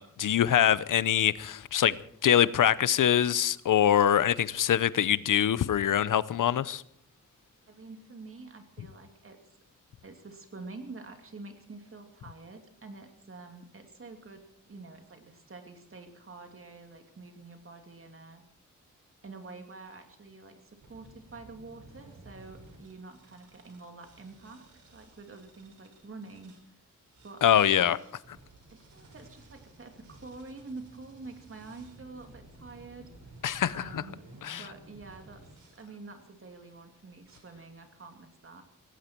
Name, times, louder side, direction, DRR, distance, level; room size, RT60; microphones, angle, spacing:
voice 1, 0.0-2.0 2.2-6.8 27.4-28.0 33.4-34.0 34.4-34.6, left 10 dB, 85° left, 0.7 m, -24 dB
voice 2, 7.7-9.4 10.0-14.4 14.7-18.4 19.2-24.7 24.9-26.7 27.2-28.0 28.7-33.4 33.7-35.5 35.8-38.6, right 3 dB, 45° right, 2.7 m, -47 dB
sound 1, 20.8-26.6 27.1-35.9 36.5-36.8 37.2-37.4, right 2 dB, 70° right, 5.0 m, -54 dB
18.0 x 17.0 x 4.5 m
wide cardioid pair, 115°, 31 cm